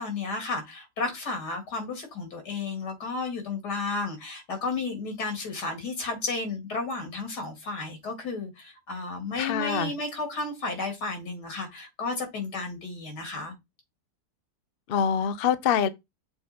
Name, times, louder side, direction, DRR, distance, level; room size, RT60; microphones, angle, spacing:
voice 1, 0.0-13.5, left 3 dB, 80° left, 2.8 m, -33 dB
voice 2, 9.4-9.9 14.9-15.9, left 8 dB, 65° left, 0.5 m, -25 dB
6.8 x 3.7 x 4.2 m
omnidirectional pair, 1.7 m